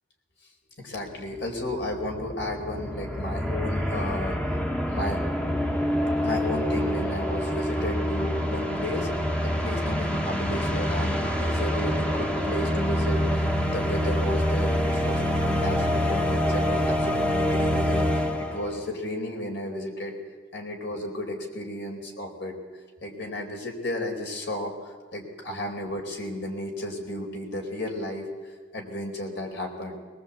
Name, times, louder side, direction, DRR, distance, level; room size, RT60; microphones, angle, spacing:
voice 1, 0.8-4.6 4.9-5.2 6.2-9.1 9.4-20.1 20.5-22.5 23.0-28.3 28.7-30.0, left 1 dB, 65° left, 3 dB, 4.5 m, -33 dB
sound 1, 1.1-1.2 1.4-18.8, equal, 5° left, 1.3 m, -26 dB
22.0 x 20.5 x 8.3 m, 1.4 s
head